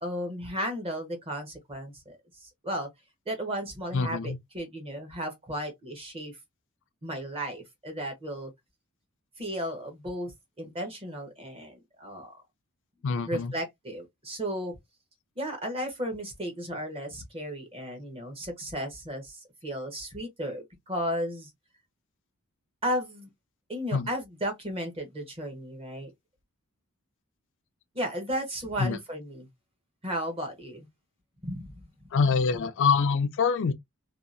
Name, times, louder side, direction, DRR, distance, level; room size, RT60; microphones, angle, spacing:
voice 1, 0.0-2.2 2.4-2.9 3.3-6.4 7.0-8.5 9.4-10.3 10.6-12.4 13.3-14.7 15.4-21.5 22.8-23.3 23.7-26.1 27.9-29.5 30.0-30.9 31.4-31.8 32.1-32.4, equal, 25° right, 0.9 m, -34 dB
voice 2, 3.9-4.4 13.0-13.5 23.9-24.1 28.8-29.0 32.1-33.7, left 5 dB, 60° left, 0.4 m, -25 dB
2.8 x 2.3 x 2.4 m
head